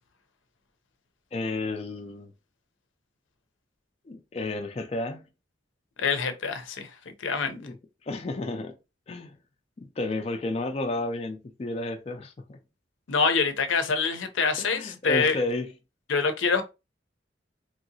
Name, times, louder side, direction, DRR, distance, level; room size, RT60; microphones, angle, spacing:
voice 1, 1.3-2.3 4.1-5.2 7.5-8.7 9.1-9.3 9.8-12.6 14.6-15.7, left 2 dB, 30° left, 0.3 m, -32 dB
voice 2, 6.0-7.6 13.1-15.4 16.1-16.6, left 5 dB, 90° left, 0.6 m, -26 dB
3.0 x 2.7 x 2.7 m
head